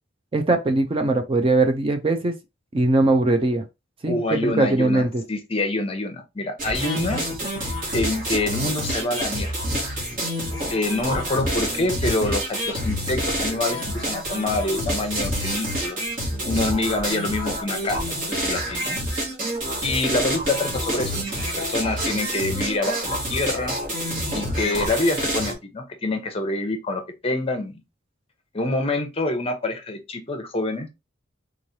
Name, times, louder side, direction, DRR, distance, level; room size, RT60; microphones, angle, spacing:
voice 1, 0.3-2.3 2.7-3.6 4.0-5.2, right 2 dB, 30° right, 0.4 m, -20 dB
voice 2, 4.0-5.0 5.3-7.2 7.6-9.5 10.7-16.0 16.5-19.0 19.8-23.7 24.3-27.8 28.5-30.9, left 2 dB, 30° left, 0.7 m, -26 dB
sound 1, 6.6-25.5, equal, 45° right, 1.6 m, -27 dB
3.6 x 3.1 x 2.7 m
head